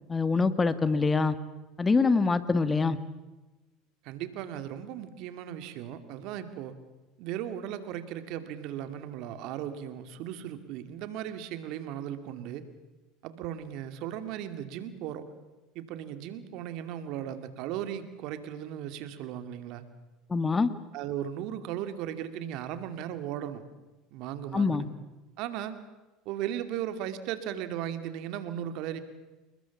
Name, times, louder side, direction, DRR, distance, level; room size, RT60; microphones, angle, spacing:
voice 1, 0.1-1.3 1.8-3.0 20.3-20.7 24.5-24.8, left 4 dB, 20° left, 13 dB, 1.7 m, -24 dB
voice 2, 4.0-6.7 7.2-12.6 13.2-15.2 15.7-19.8 20.9-23.6 24.1-24.8 25.4-25.7 26.2-29.0, right 10 dB, 65° right, 10 dB, 2.6 m, -36 dB
29.0 x 21.0 x 7.3 m, 1.1 s
hypercardioid pair, 85°, 0 cm